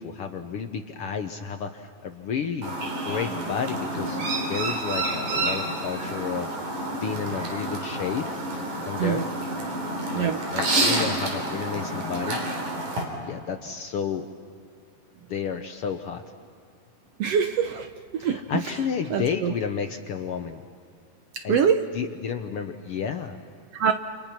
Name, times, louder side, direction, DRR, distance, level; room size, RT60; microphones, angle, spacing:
voice 1, 0.0-2.7 3.0-4.2 4.5-6.6 7.0-8.3 8.8-9.3 10.1-12.4 13.2-14.3 15.3-16.2 18.2-20.6 21.4-21.6 21.9-23.4, left 7 dB, 65° left, 6 dB, 1.5 m, -31 dB
Chirp tweet, 2.6-13.0, right 2 dB, 90° right, 5.5 m, -29 dB
voice 2, 17.2-17.9 18.1-18.4 19.1-19.5 21.5-21.8 23.7-23.9, right 7 dB, 65° right, 7 dB, 1.6 m, -23 dB
29.5 x 28.0 x 5.9 m, 2.3 s
omnidirectional pair, 3.5 m